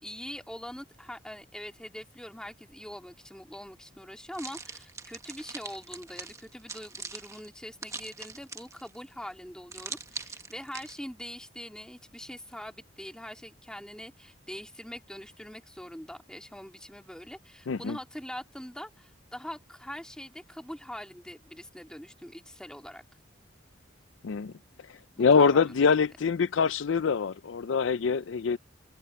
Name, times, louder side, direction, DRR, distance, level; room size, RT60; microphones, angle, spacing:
voice 1, 0.0-23.0 25.2-25.9, equal, 5° left, 2.2 m, -43 dB
sound 1, 4.3-9.0 9.7-11.0, right 4 dB, 15° right, 1.4 m, -42 dB
voice 2, 17.7-18.0 24.2-24.5 25.2-28.6, left 5 dB, 70° left, 0.5 m, -24 dB
open air
head